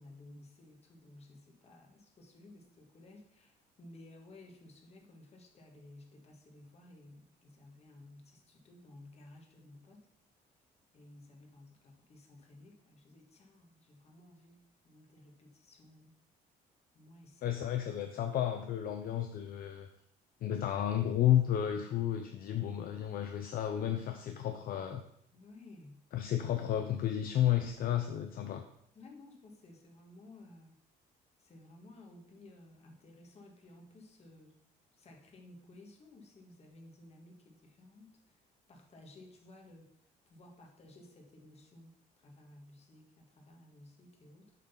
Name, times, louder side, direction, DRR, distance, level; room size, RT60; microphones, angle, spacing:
voice 1, 0.0-10.1 10.9-16.1 16.9-17.6 25.3-26.0 28.9-30.8 31.4-34.5 34.9-38.4 38.7-39.9 40.3-41.9 42.2-44.5, left 2 dB, 40° left, 1 dB, 1.6 m, -56 dB
voice 2, 17.4-19.9 20.4-25.0 26.1-28.6, left 11 dB, 60° left, 6 dB, 0.6 m, -32 dB
7.4 x 3.9 x 5.6 m, 0.72 s
cardioid pair, 110°, 17 cm